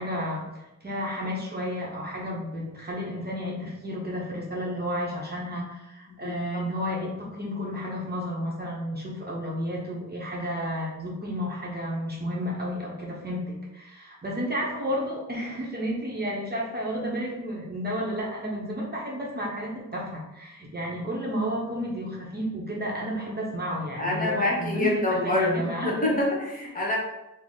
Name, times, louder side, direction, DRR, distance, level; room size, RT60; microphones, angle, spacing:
voice 1, 0.0-25.9, equal, 30° right, -3 dB, 0.7 m, -32 dB
voice 2, 24.0-27.0, left 2 dB, 25° left, -4 dB, 1.0 m, -26 dB
3.9 x 2.0 x 3.6 m, 0.92 s
wide cardioid pair, 105°, 32 cm